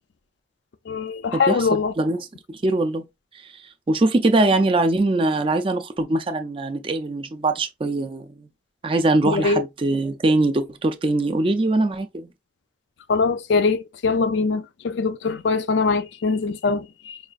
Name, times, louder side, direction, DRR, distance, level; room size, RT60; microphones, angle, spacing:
voice 1, 0.9-1.9 9.2-9.6 13.1-17.2, left 4 dB, 65° left, 0.4 m, -22 dB
voice 2, 2.0-3.0 3.9-8.5 8.8-12.3, right 2 dB, 30° right, 0.4 m, -22 dB
4.8 x 2.4 x 2.4 m
head